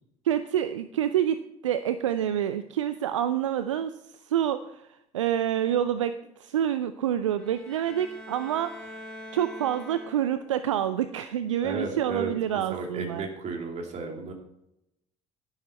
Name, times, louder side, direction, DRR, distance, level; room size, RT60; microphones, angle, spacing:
voice 1, 0.2-8.9 9.3-13.3, right 10 dB, 75° right, 11 dB, 0.5 m, -27 dB
sound 1, 7.4-10.6, left 1 dB, 5° left, 3.4 m, -44 dB
voice 2, 11.6-12.3 12.7-14.3, right 3 dB, 45° right, 2 dB, 2.7 m, -33 dB
11.0 x 10.5 x 4.4 m, 0.83 s
figure-of-eight pair, 55°, 16 cm